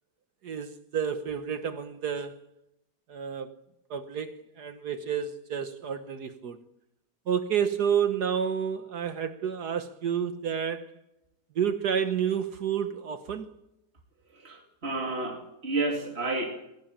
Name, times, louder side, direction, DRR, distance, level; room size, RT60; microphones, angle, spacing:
voice 1, 0.4-2.4 3.1-3.5 3.9-6.6 7.3-10.9 11.5-13.5, right 8 dB, 65° right, 1.7 m, -30 dB
voice 2, 14.4-16.4, right 2 dB, 35° right, 3.2 m, -31 dB
23.0 x 16.5 x 8.9 m
omnidirectional pair, 1.8 m